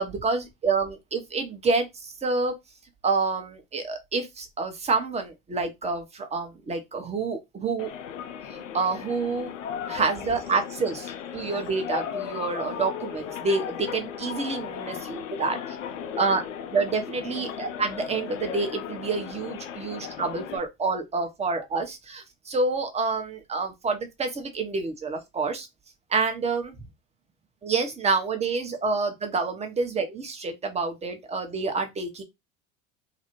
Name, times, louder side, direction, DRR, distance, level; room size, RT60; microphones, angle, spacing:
voice 1, 0.0-2.5 3.0-7.9 8.5-9.5 9.9-15.6 16.2-16.4 16.7-25.7 26.1-26.7 27.6-32.2, right 4 dB, 15° right, 0.7 m, -28 dB
sound 1, 7.8-20.6, left 8 dB, 80° left, 0.5 m, -36 dB
2.4 x 2.0 x 3.0 m
hypercardioid pair, 80°, 38 cm